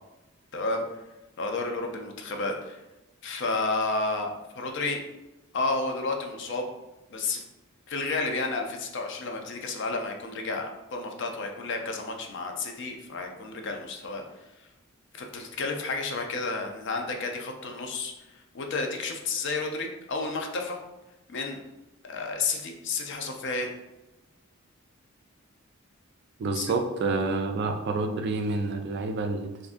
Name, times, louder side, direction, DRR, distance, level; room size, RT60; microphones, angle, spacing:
voice 1, 0.5-0.8 1.4-2.8 3.2-5.0 5.5-6.7 7.1-7.4 7.9-14.2 15.2-18.1 18.5-20.8 21.3-21.6 22.1-23.7 26.5-26.7, left 3 dB, 60° left, 3 dB, 0.5 m, -31 dB
voice 2, 26.4-29.5, right 3 dB, 55° right, 5 dB, 0.3 m, -28 dB
3.6 x 2.5 x 2.4 m, 0.99 s
head